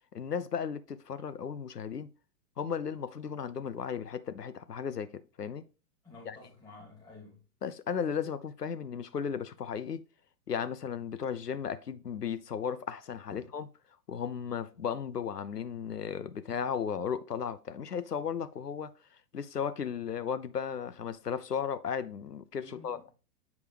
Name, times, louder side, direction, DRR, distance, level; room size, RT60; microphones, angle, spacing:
voice 1, 0.1-2.1 2.6-5.6 6.3-6.4 7.6-10.0 10.5-13.7 14.1-18.9 19.3-23.1, left 7 dB, 80° left, 0.7 m, -35 dB
voice 2, 6.0-7.4 13.3-13.5 22.6-23.0, left 3 dB, 10° left, 2.8 m, -51 dB
7.2 x 4.8 x 3.2 m
figure-of-eight pair, 110°, 47 cm